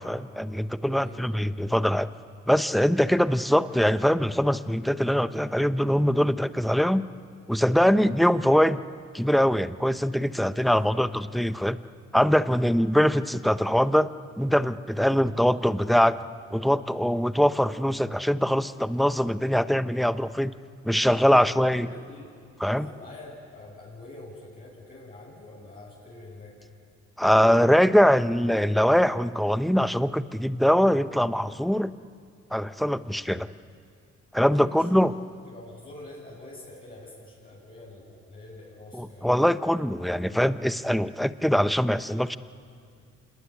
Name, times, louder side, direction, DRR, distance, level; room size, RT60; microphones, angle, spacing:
voice 1, 0.0-2.1 2.5-7.0 7.5-8.8 9.1-11.8 12.1-14.1 14.4-16.2 16.5-20.5 20.8-21.9 22.6-22.9 27.2-31.9 32.5-33.5 34.3-35.1 38.9-42.4, equal, ahead, 12 dB, 0.7 m, -22 dB
voice 2, 0.9-1.5 10.5-11.1 21.2-22.3 22.7-26.5 34.4-35.0 35.5-39.3, left 2 dB, 30° left, -6 dB, 7.9 m, -46 dB
27.0 x 20.0 x 10.0 m, 2.2 s
cardioid pair, 90°, 30 cm